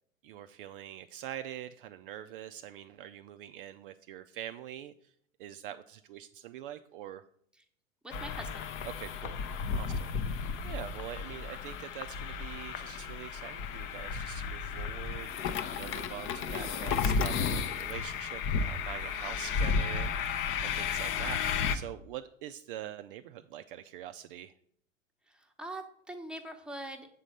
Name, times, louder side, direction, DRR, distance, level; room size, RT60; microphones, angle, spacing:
voice 1, 0.2-5.1 5.4-7.2 8.8-9.4 9.8-24.5, right 11 dB, 45° right, 9 dB, 0.4 m, -44 dB
voice 2, 8.0-8.7 9.9-10.0 16.1-16.3 16.7-16.8 20.9-21.2 25.3-27.1, right 1 dB, ahead, 4 dB, 0.9 m, -44 dB
sound 1, 8.1-21.8, left 5 dB, 30° left, 0.6 m, -33 dB
7.5 x 4.0 x 6.6 m, 0.65 s
figure-of-eight pair, 95°, 40 cm